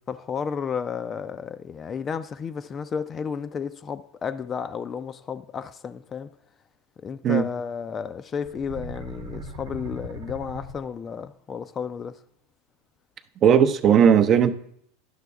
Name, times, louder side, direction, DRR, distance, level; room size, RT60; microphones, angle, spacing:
voice 1, 0.1-6.3 7.0-12.2, left 6 dB, 30° left, 0.4 m, -32 dB
sound 1, 8.4-11.2, right 1 dB, 80° right, 1.0 m, -39 dB
voice 2, 13.4-14.5, right 8 dB, 35° right, 0.5 m, -17 dB
11.0 x 6.0 x 3.5 m
hypercardioid pair, 85°, 0 cm